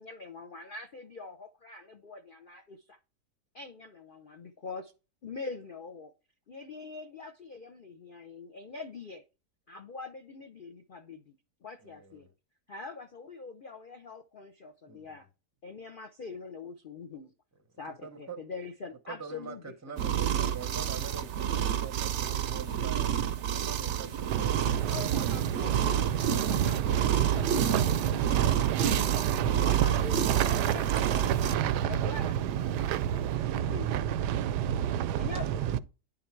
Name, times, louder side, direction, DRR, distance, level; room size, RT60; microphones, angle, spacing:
voice 1, 0.0-3.0 3.5-4.9 5.2-6.1 6.5-9.2 9.7-11.3 11.6-12.3 12.7-15.3 15.6-17.3 17.8-19.9 24.9-26.1 26.3-29.1 29.4-31.5 31.9-33.9 35.1-35.8, left 4 dB, 60° left, 0.5 m, -44 dB
voice 2, 11.8-12.3 14.9-15.1 18.0-18.4 19.1-26.0, right 5 dB, 15° right, 0.5 m, -45 dB
sound 1, 20.0-31.5, right 9 dB, 60° right, 0.8 m, -30 dB
voice 3, 24.3-35.8, right 10 dB, 85° right, 1.2 m, -29 dB
9.8 x 3.9 x 4.5 m
omnidirectional pair, 1.7 m